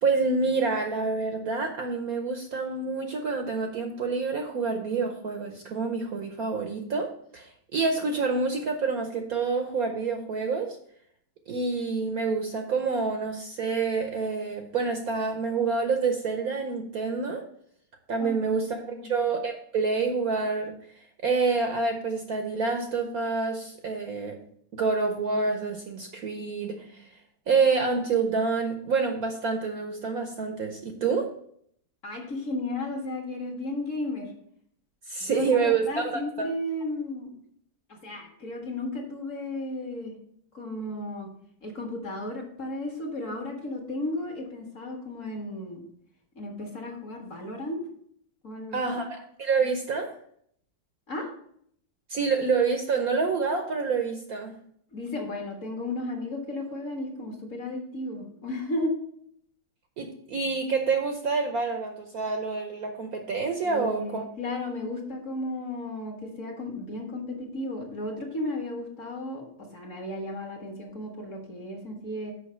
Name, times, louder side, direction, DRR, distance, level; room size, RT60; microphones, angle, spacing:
voice 1, 0.0-10.8 11.5-17.5 18.1-24.4 24.7-27.1 27.5-31.3 35.1-36.5 48.7-50.1 52.1-54.5 60.0-64.2, right 4 dB, 60° right, 5 dB, 1.0 m, -27 dB
voice 2, 32.0-34.3 35.2-37.3 37.9-40.2 40.5-41.3 41.6-45.8 46.3-47.8 48.4-48.8 51.1-51.3 54.9-58.9 63.6-69.5 69.7-72.3, left 1 dB, 45° left, 1 dB, 1.6 m, -34 dB
6.4 x 5.4 x 5.6 m, 0.67 s
omnidirectional pair, 2.1 m